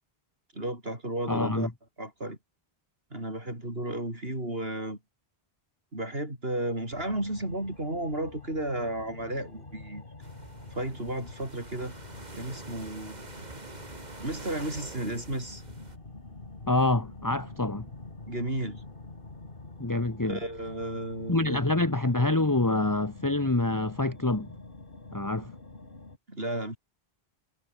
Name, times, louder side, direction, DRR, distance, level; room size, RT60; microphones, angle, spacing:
voice 1, 0.5-1.7 2.0-2.4 3.1-5.0 5.9-10.0 10.7-11.9 12.4-13.2 14.2-15.6 18.3-18.8 20.2-21.6 26.3-26.8, right 1 dB, 70° right, 7.3 m, -33 dB
voice 2, 1.3-1.7 16.7-17.9 19.8-20.4 21.3-24.5 25.1-25.5, left 2 dB, 20° left, 1.4 m, -26 dB
sound 1, 6.9-26.2, left 2 dB, 55° left, 3.1 m, -47 dB
sound 2, 10.2-16.0, right 2 dB, 45° right, 2.7 m, -46 dB
omnidirectional pair, 1.1 m